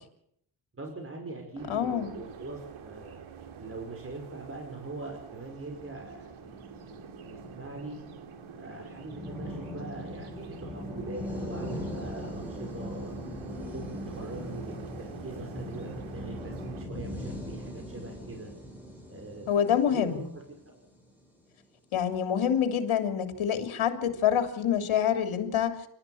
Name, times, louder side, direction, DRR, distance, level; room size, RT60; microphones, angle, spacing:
voice 1, 0.8-3.2 3.6-8.0 8.5-13.1 13.7-18.5 19.1-19.6 19.9-20.4, right 2 dB, 25° right, 1 dB, 5.5 m, -42 dB
sound 1, 1.6-16.9, right 7 dB, 85° right, 2.6 m, -47 dB
voice 2, 1.7-2.1 19.5-20.2 21.9-25.8, left 9 dB, 80° left, 7 dB, 3.3 m, -26 dB
sound 2, 5.8-21.2, left 1 dB, 5° right, 7.9 m, -40 dB
28.0 x 13.5 x 8.6 m, 0.70 s
cardioid pair, 100°, 48 cm